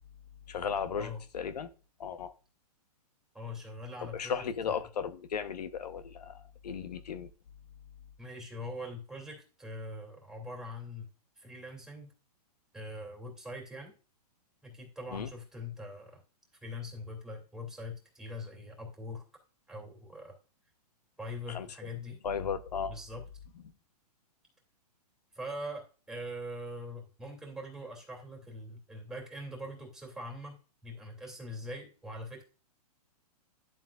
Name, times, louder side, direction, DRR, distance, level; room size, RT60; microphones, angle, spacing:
voice 1, 0.5-1.7 2.0-2.3 4.1-7.3 15.1-15.3 21.5-21.7 22.2-22.9, left 7 dB, 90° left, 0.9 m, -35 dB
voice 2, 3.3-4.8 8.2-11.1 11.4-12.1 12.7-13.9 14.6-16.2 16.6-19.2 19.7-20.3 21.2-22.2 22.9-23.2 25.3-30.6 30.8-32.4, left 1 dB, 5° right, 2.6 m, -42 dB
11.0 x 7.6 x 2.4 m
hypercardioid pair, 150°, 20 cm